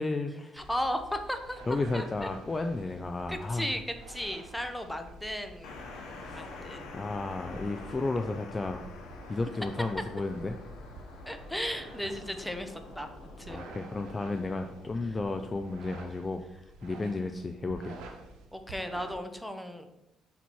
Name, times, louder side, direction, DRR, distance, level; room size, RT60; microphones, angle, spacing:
voice 1, 0.0-0.7 1.7-3.7 6.2-6.5 6.9-8.8 9.3-10.6 13.5-16.4 16.8-18.0, left 3 dB, 25° left, 6 dB, 0.4 m, -33 dB
voice 2, 0.6-1.6 1.9-2.3 3.3-3.8 4.1-5.9 6.3-7.0 11.3-13.1 13.4-13.6 18.5-19.9, equal, 5° left, 6 dB, 0.8 m, -35 dB
sound 1, 0.6-19.2, right 2 dB, 90° right, 0.9 m, -49 dB
sound 2, 5.6-16.1, left 3 dB, 85° left, 1.0 m, -47 dB
5.8 x 4.2 x 4.6 m, 0.91 s
cardioid pair, 90°, 0 cm